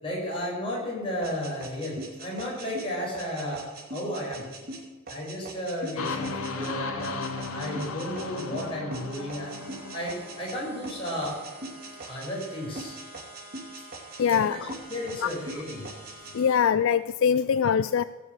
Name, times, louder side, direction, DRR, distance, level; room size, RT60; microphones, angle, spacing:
voice 1, 0.0-4.5 5.1-7.2 7.5-11.4 12.1-12.9 14.3-14.6 14.9-15.9, equal, 25° left, -3 dB, 5.8 m, -33 dB
sound 1, 1.2-10.6 10.8-12.5 12.7-14.4 14.7-16.3, right 2 dB, 45° right, 2.6 m, -41 dB
sound 2, 6.0-11.7, left 4 dB, 90° left, 1.3 m, -36 dB
sound 3, 9.4-16.6, right 1 dB, 25° right, 4.6 m, -49 dB
voice 2, 14.2-14.6 16.3-18.0, left 7 dB, 65° left, 15 dB, 0.4 m, -23 dB
17.5 x 7.2 x 8.0 m, 1.2 s
head